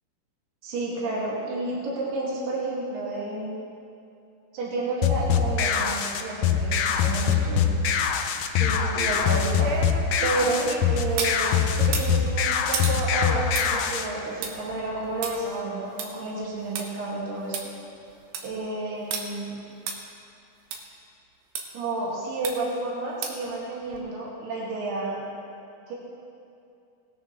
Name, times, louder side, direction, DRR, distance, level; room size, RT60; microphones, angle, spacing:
voice 1, 0.6-3.6 4.5-7.8 8.6-9.7 10.2-17.7 18.4-19.6 21.7-25.3 25.9-26.0, right 2 dB, 65° right, -5 dB, 3.5 m, -30 dB
sound 1, 5.0-14.1, left 7 dB, 85° left, 1.8 m, -24 dB
sound 2, 8.9-11.4 11.8-16.8 17.2-17.3 17.5-17.6 18.1-18.5 19.1-19.2 19.9-20.0 20.7-20.8 21.5-21.6 22.4-22.8 23.2-23.5 23.9-24.0, right 5 dB, 80° right, 2.8 m, -34 dB
19.0 x 10.0 x 3.1 m, 2.6 s
omnidirectional pair, 4.4 m